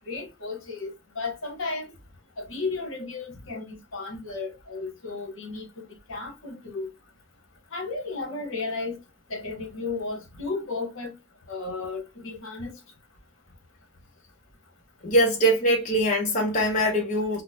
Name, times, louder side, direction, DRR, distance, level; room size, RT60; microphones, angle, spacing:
voice 1, 0.1-1.9 2.4-6.9 7.7-9.0 9.3-11.1 11.5-12.8, left 3 dB, 65° left, 1.1 m, -34 dB
voice 2, 15.0-17.4, equal, 35° left, 0.7 m, -22 dB
3.9 x 2.1 x 2.6 m
head